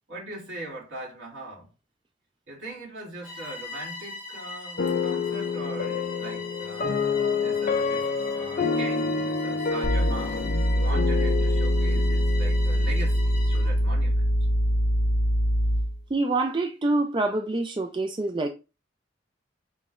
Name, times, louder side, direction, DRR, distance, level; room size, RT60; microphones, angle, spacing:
voice 1, 0.1-1.7 2.5-7.0 7.4-10.4 10.7-14.2, right 2 dB, 75° right, 2.4 m, -40 dB
Bowed string instrument, 3.2-13.8, left 4 dB, 5° right, 1.8 m, -41 dB
sound 1, 4.8-13.9, left 5 dB, 45° left, 0.4 m, -29 dB
sound 2, 9.8-16.0, equal, 65° left, 1.3 m, -23 dB
voice 2, 16.1-18.5, right 2 dB, 25° right, 0.4 m, -26 dB
6.1 x 3.2 x 2.5 m
head